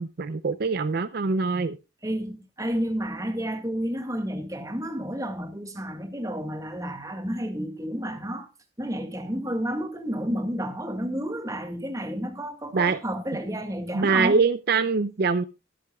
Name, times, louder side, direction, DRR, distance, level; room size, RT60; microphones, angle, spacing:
voice 1, 0.0-1.8 12.7-13.0 13.9-15.4, right 4 dB, 55° right, 0.5 m, -23 dB
voice 2, 2.0-8.5 8.8-14.4, equal, 20° right, 2.0 m, -31 dB
22.5 x 7.9 x 2.3 m
head